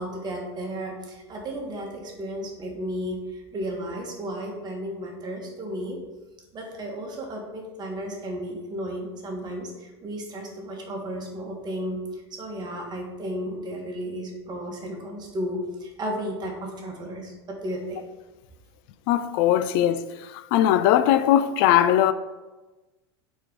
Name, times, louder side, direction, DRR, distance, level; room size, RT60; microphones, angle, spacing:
voice 1, 0.0-6.0 6.5-12.0 12.3-18.0, equal, 30° right, 1.5 m, -33 dB
voice 2, 19.1-20.0 20.5-22.1, left 11 dB, 55° left, 0.4 m, -19 dB
4.5 x 4.3 x 5.0 m
hypercardioid pair, 100°, 14 cm